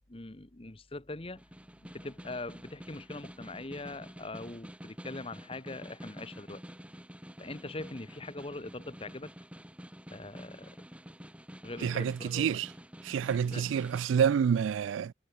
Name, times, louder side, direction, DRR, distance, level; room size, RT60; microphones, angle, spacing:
voice 1, 0.1-1.4 1.8-6.6 7.4-9.3 10.1-10.7 11.6-12.6 13.3-13.7, left 2 dB, 30° left, 1.0 m, -42 dB
Snare drum, 1.4-14.1, equal, 5° right, 3.2 m, -48 dB
voice 2, 11.8-12.7 13.0-15.1, right 7 dB, 80° right, 0.3 m, -28 dB
head